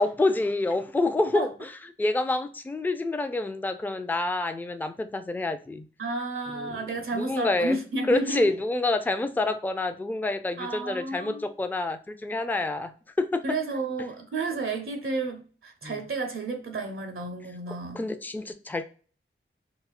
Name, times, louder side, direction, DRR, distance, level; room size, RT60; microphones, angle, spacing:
voice 1, 0.0-1.7 2.0-5.9 6.5-6.9 7.1-7.8 8.1-13.4 15.8-16.0 17.9-18.8, left 2 dB, 10° left, 0.3 m, -27 dB
voice 2, 6.0-8.5 10.6-11.5 13.4-18.0, right 3 dB, 80° right, 0.6 m, -31 dB
4.1 x 2.0 x 2.4 m
wide cardioid pair, 65°, 21 cm